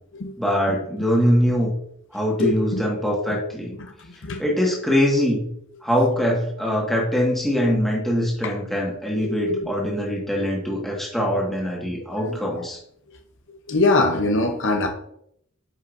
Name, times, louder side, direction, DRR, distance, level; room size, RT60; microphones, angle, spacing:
voice 1, 0.4-1.7 2.1-3.7 4.4-5.5 5.8-12.8, equal, ahead, -3 dB, 1.7 m, -22 dB
voice 2, 2.4-2.8 4.2-4.4 8.4-8.5 9.2-9.6 12.1-12.7 13.7-14.9, left 2 dB, 55° left, 4 dB, 0.8 m, -23 dB
9.6 x 5.5 x 2.6 m, 0.70 s
head